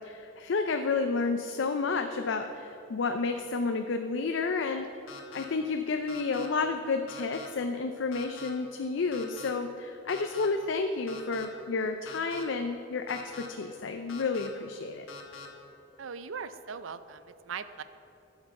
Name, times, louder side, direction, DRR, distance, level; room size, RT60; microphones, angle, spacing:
voice 1, 0.0-4.9 5.3-15.0, left 4 dB, 70° left, 6 dB, 0.5 m, -31 dB
sound 1, 5.1-5.4 6.1-6.5 7.1-7.5 8.1-8.5 9.1-9.5 10.1-10.5 11.1-11.4 12.0-12.4 13.1-13.5 14.1-14.5 15.1-15.5, left 5 dB, 90° left, 1.2 m, -44 dB
voice 2, 16.0-17.8, right 6 dB, 85° right, 12 dB, 0.5 m, -40 dB
12.0 x 6.0 x 6.5 m, 2.9 s
head